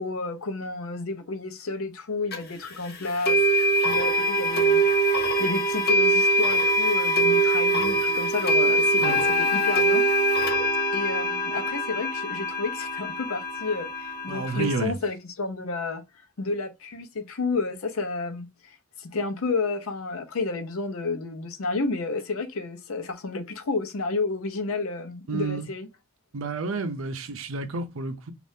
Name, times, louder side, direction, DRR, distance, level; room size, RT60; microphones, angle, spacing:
voice 1, 0.0-10.0 10.9-16.0 16.4-25.9, left 3 dB, 80° left, 0.6 m, -31 dB
sound 1, 2.3-2.4 3.3-14.8, right 1 dB, 50° left, 0.8 m, -23 dB
voice 2, 14.3-15.0 25.3-25.7 26.3-28.3, right 3 dB, 65° right, 0.6 m, -30 dB
2.7 x 2.5 x 3.3 m
head